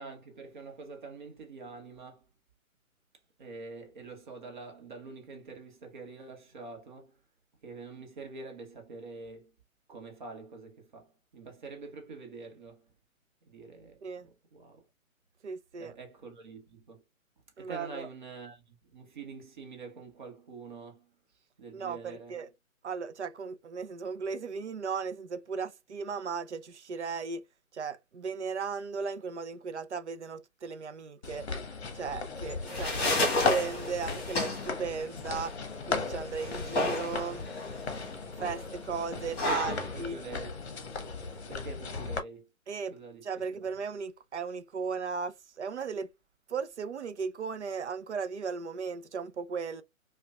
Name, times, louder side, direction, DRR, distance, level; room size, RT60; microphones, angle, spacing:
voice 1, 0.0-2.3 3.4-7.2 7.6-9.5 9.9-12.9 13.4-14.9 15.8-17.0 17.6-21.1 21.6-22.4 32.7-33.2 39.1-40.7 41.5-42.5 42.9-43.3, right 4 dB, 35° right, 1.0 m, -46 dB
voice 2, 15.4-15.9 17.6-18.1 21.7-22.5 22.8-27.4 27.7-31.5 31.9-35.6 35.9-37.5 38.4-40.2 42.7-43.0 43.2-46.1 46.5-49.8, right 5 dB, 55° right, 0.5 m, -36 dB
sound 1, 31.2-42.2, left 4 dB, 50° left, 0.9 m, -37 dB
sound 2, 32.4-41.4, left 2 dB, 20° left, 1.6 m, -33 dB
5.0 x 2.3 x 2.3 m
figure-of-eight pair, 140°, 42 cm